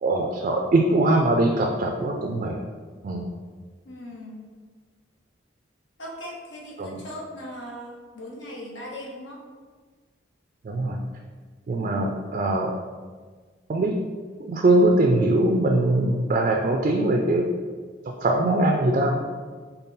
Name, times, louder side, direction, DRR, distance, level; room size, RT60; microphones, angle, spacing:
voice 1, 0.0-2.6 3.0-3.3 6.8-7.0 10.6-11.0 11.7-12.7 13.7-14.0 14.4-17.5 18.2-19.2, right 2 dB, 40° right, 2 dB, 0.3 m, -22 dB
voice 2, 3.8-4.5 6.0-9.4, equal, 70° left, -4 dB, 1.1 m, -39 dB
5.3 x 2.3 x 3.9 m, 1.5 s
head